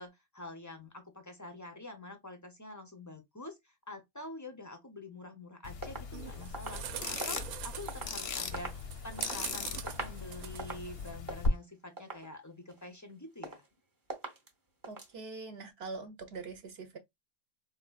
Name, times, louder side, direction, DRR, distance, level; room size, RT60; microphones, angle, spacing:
voice 1, 0.0-13.6, left 2 dB, 30° left, 0.3 m, -47 dB
sound 1, 5.6-11.5, left 6 dB, 60° left, 0.7 m, -39 dB
sound 2, 5.8-8.2 8.5-9.4 9.8-10.2 10.5-10.9 11.3-11.6 12.0-12.3 12.7-13.1 13.4-13.8 14.1-14.5 14.8-15.1, right 3 dB, 20° right, 0.6 m, -43 dB
sound 3, 6.1-11.1, right 10 dB, 85° right, 1.0 m, -44 dB
voice 2, 14.9-17.0, right 4 dB, 55° right, 0.8 m, -43 dB
3.8 x 2.7 x 2.3 m
omnidirectional pair, 1.5 m